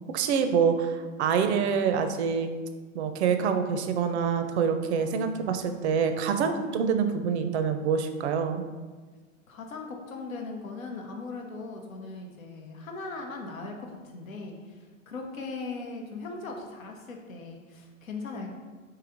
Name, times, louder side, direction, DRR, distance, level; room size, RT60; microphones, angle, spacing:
voice 1, 0.1-2.5 2.9-8.6, right 6 dB, 55° right, 7 dB, 0.5 m, -26 dB
voice 2, 9.5-18.6, left 3 dB, 85° left, 2 dB, 0.9 m, -39 dB
3.1 x 2.8 x 3.8 m, 1.4 s
hypercardioid pair, 120°, 40 cm